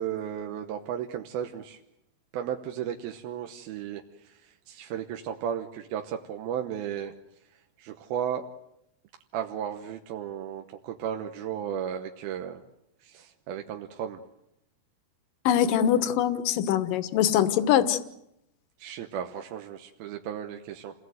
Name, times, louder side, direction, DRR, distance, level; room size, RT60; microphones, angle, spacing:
voice 1, 0.0-1.8 2.3-7.1 7.8-8.5 9.3-12.6 13.0-14.2 18.8-20.9, right 9 dB, 80° right, 4 dB, 2.9 m, -34 dB
voice 2, 15.5-18.0, left 10 dB, 70° left, 11 dB, 2.7 m, -23 dB
29.5 x 18.5 x 7.9 m, 0.82 s
omnidirectional pair, 4.4 m